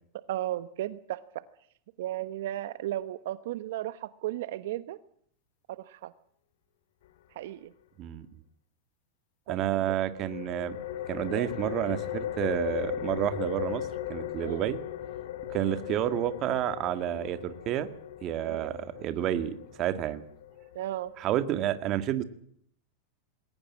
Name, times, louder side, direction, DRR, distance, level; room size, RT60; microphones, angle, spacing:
voice 1, 0.3-1.4 2.0-5.0 5.7-6.1 7.3-7.7 9.5-10.0 11.3-11.5 14.4-14.6 15.5-15.8 18.4-18.7 20.7-21.1, right 14 dB, 70° right, 14 dB, 1.1 m, -35 dB
voice 2, 9.5-10.8 11.1-14.8 15.5-17.9 18.2-20.2 21.2-22.2, right 12 dB, 35° right, 12 dB, 1.9 m, -30 dB
sound 1, 10.1-21.5, left 11 dB, 80° left, 2.4 m, -38 dB
21.0 x 19.0 x 7.4 m, 0.63 s
supercardioid pair, 150°, 0 cm